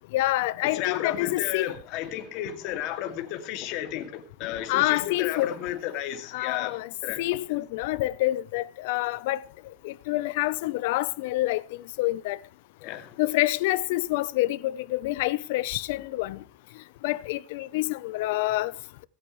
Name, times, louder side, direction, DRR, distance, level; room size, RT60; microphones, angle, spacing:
voice 1, 0.1-1.7 4.7-5.5 6.3-6.9 7.2-9.4 9.8-11.6 12.0-12.4 13.2-16.4 17.0-18.7, left 17 dB, 70° left, 0.7 m, -27 dB
voice 2, 0.6-7.2 12.8-13.1, left 11 dB, 50° left, 2.4 m, -33 dB
26.0 x 8.8 x 3.2 m
supercardioid pair, 170°, 0 cm